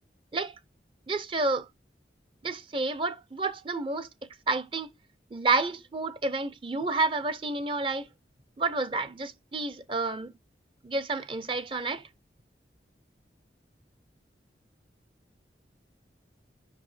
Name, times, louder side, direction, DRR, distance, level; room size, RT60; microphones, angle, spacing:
voice 1, 1.1-1.7 2.4-4.1 4.5-4.9 5.3-8.1 8.6-10.3 10.8-12.1, right 3 dB, 30° right, 0.5 m, -30 dB
7.4 x 5.5 x 3.2 m
head